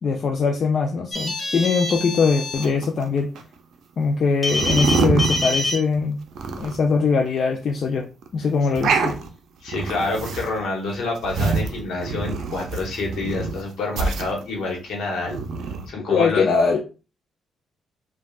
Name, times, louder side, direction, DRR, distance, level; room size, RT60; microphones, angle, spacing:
voice 1, 0.0-3.3 4.0-6.2 6.6-8.1 8.3-9.2 16.1-16.8, left 4 dB, 55° left, 2 dB, 0.4 m, -21 dB
sound 1, 1.1-2.7 4.4-5.8, left 2 dB, 25° left, 0.9 m, -26 dB
sound 2, 2.6-3.4 4.4-6.0 6.3-6.9 7.4-7.5 7.7-7.8 8.2-8.3 8.6-9.3 9.7-10.6 10.9-13.6 14.0-14.7 15.2-15.9, right 4 dB, 70° right, 0.5 m, -26 dB
voice 2, 9.6-15.4 15.9-16.5, left 3 dB, 75° left, 0 dB, 1.1 m, -28 dB
3.3 x 2.3 x 2.3 m, 0.33 s
cardioid pair, 90°, 0 cm